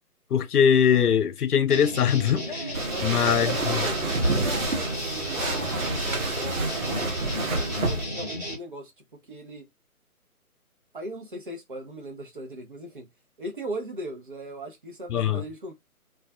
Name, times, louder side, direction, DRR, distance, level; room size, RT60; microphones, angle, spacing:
voice 1, 0.3-2.4 3.0-3.8 15.1-15.4, left 8 dB, 80° left, 0.6 m, -22 dB
sound 1, 1.7-8.5, equal, 5° left, 0.6 m, -34 dB
Cheering, 2.3-3.0 3.4-4.1 4.3-5.0 5.3-7.1, left 2 dB, 35° left, 0.8 m, -41 dB
sound 2, 2.7-8.0, right 3 dB, 65° right, 0.9 m, -28 dB
voice 2, 2.9-5.4 5.8-8.9 9.3-9.6 10.9-13.1 13.4-15.7, right 1 dB, 35° right, 0.6 m, -38 dB
2.3 x 2.3 x 2.3 m
figure-of-eight pair, 145°, 45 cm